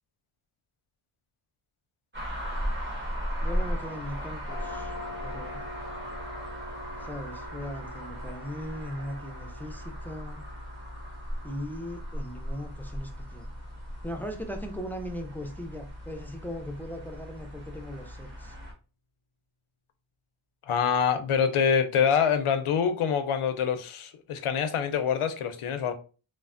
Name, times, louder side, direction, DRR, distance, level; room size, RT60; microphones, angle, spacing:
sound 1, 2.1-18.7, equal, 25° right, 1.0 m, -37 dB
voice 1, 3.4-5.0 5.2-5.6 7.0-10.4 11.4-13.5 14.0-18.5, equal, 5° left, 0.4 m, -39 dB
sound 2, 4.4-16.0, left 2 dB, 60° right, 0.9 m, -47 dB
voice 2, 20.7-25.9, left 7 dB, 85° left, 0.6 m, -25 dB
3.2 x 2.0 x 2.4 m
wide cardioid pair, 75°, 49 cm